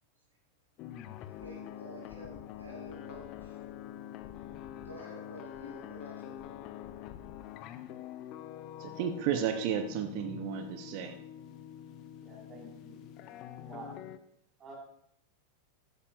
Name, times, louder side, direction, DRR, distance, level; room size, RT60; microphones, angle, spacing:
sound 1, 0.8-14.2, left 11 dB, 40° left, 0.6 m, -45 dB
voice 1, 1.2-3.6 4.7-6.6, equal, 80° right, -4 dB, 4.5 m, -50 dB
voice 2, 8.8-11.2, right 8 dB, 45° right, 8 dB, 0.8 m, -33 dB
voice 3, 12.2-13.1 13.6-14.0 14.6-14.7, right 2 dB, 25° right, -10 dB, 4.4 m, -48 dB
14.5 x 9.7 x 2.5 m, 0.71 s
figure-of-eight pair, 90°, 0 cm